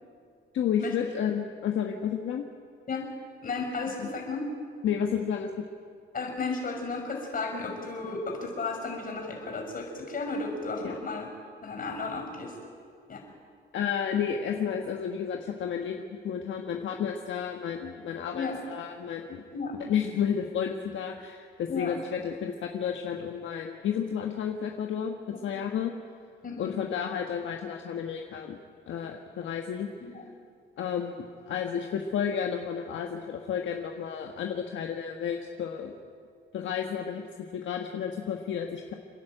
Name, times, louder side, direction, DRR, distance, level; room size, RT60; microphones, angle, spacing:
voice 1, 0.5-2.4 4.0-4.1 4.8-5.5 10.8-11.0 13.7-19.4 19.9-25.9 26.6-28.6 28.9-29.9 30.8-35.9 36.5-38.9, left 8 dB, 70° left, 3 dB, 1.4 m, -31 dB
voice 2, 3.4-4.5 6.1-11.3 11.6-12.6 13.1-13.2 18.3-18.6 19.5-19.8 21.7-22.0 26.4-26.7 30.0-30.2, left 3 dB, 45° left, 3 dB, 6.0 m, -34 dB
29.5 x 10.5 x 9.1 m, 2.2 s
cardioid pair, 90°, 20 cm